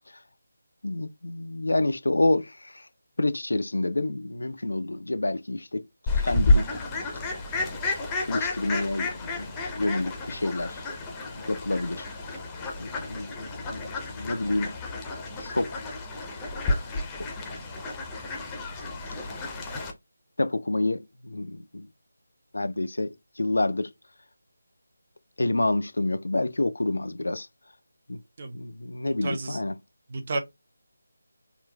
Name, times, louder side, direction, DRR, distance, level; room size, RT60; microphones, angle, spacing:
voice 1, 0.8-2.8 3.2-5.9 6.2-6.8 8.3-10.8 11.3-12.1 12.8-14.7 15.4-15.8 20.4-21.9 22.5-23.9 25.4-27.5 28.1-28.2 28.5-29.7, left 2 dB, 70° left, 0.4 m, -28 dB
Fowl, 6.1-19.9, left 2 dB, 10° left, 0.6 m, -30 dB
voice 2, 29.0-29.6 30.1-30.4, right 3 dB, 40° right, 0.7 m, -32 dB
3.7 x 2.3 x 2.3 m
figure-of-eight pair, 160°, 0 cm